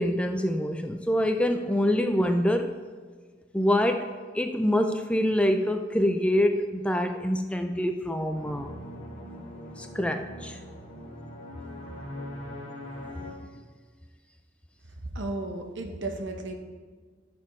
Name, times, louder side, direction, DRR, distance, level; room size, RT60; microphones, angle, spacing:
voice 1, 0.0-2.7 3.5-4.1 4.3-8.7 9.8-10.6, left 1 dB, 5° left, 6 dB, 0.3 m, -25 dB
sound 1, 8.3-13.3, left 1 dB, 40° left, 2.4 m, -41 dB
voice 2, 15.1-16.6, right 2 dB, 70° right, 4 dB, 1.1 m, -33 dB
15.0 x 6.1 x 3.1 m, 1.5 s
head